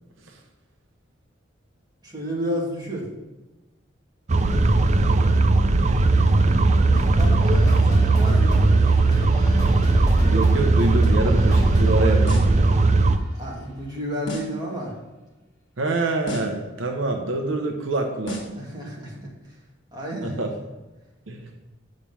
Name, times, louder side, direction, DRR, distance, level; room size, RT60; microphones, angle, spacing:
voice 1, 2.0-3.1 7.2-9.2 13.3-15.0 18.6-19.5 19.9-20.4, equal, 20° right, -4 dB, 2.3 m, -31 dB
sound 1, 4.3-13.2, right 3 dB, 35° right, 0.5 m, -18 dB
voice 2, 5.0-5.9 10.3-12.4 15.8-18.4 20.2-20.5 21.3-21.5, right 2 dB, 75° right, 3 dB, 0.9 m, -26 dB
sound 2, 6.9-13.0, equal, 20° left, 1.6 m, -31 dB
sound 3, 12.3-12.7 14.3-14.7 16.3-16.7 18.3-18.7, equal, 65° left, 1.7 m, -33 dB
7.4 x 5.3 x 5.5 m, 1.1 s
head